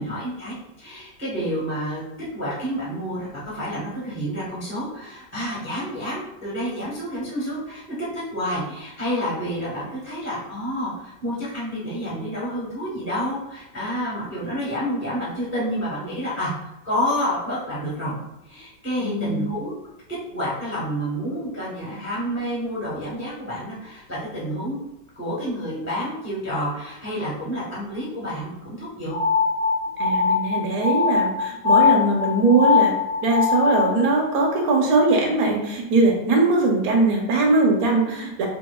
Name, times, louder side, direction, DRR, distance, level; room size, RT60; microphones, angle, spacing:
voice 1, 0.0-2.0 2.3-7.8 8.1-16.5 16.8-18.2 18.4-19.7 20.3-24.8 25.2-29.1, equal, 15° right, -7 dB, 0.4 m, -29 dB
voice 2, 19.0-19.4 30.0-32.9 33.2-38.5, right 3 dB, 65° right, 0 dB, 1.0 m, -20 dB
sound 1, 29.1-34.0, left 6 dB, 60° left, 0.9 m, -21 dB
4.2 x 2.3 x 2.2 m, 0.90 s
omnidirectional pair, 1.9 m